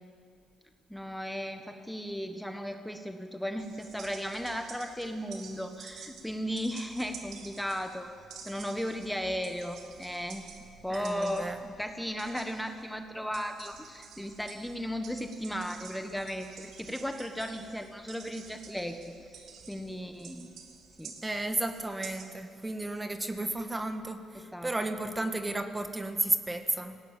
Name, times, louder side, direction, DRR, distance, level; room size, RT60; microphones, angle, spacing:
voice 1, 0.9-8.1 8.4-10.5 10.8-20.5 21.0-21.1 24.5-24.7, equal, ahead, 6 dB, 1.3 m, -36 dB
sound 1, 3.6-22.3, right 6 dB, 75° right, 2.3 m, -50 dB
voice 2, 10.9-11.6 21.2-27.0, right 2 dB, 15° right, 8 dB, 1.5 m, -33 dB
19.0 x 16.5 x 8.9 m, 2.3 s
cardioid pair, 90°, 0 cm